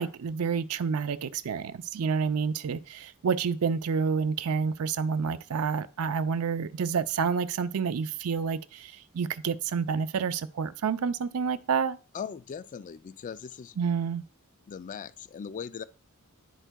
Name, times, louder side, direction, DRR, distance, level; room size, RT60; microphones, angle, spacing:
voice 1, 0.0-12.0 13.8-14.2, right 6 dB, 70° right, 0.4 m, -29 dB
voice 2, 12.1-13.8 14.7-15.8, left 7 dB, 35° left, 0.3 m, -39 dB
11.0 x 4.5 x 2.2 m
head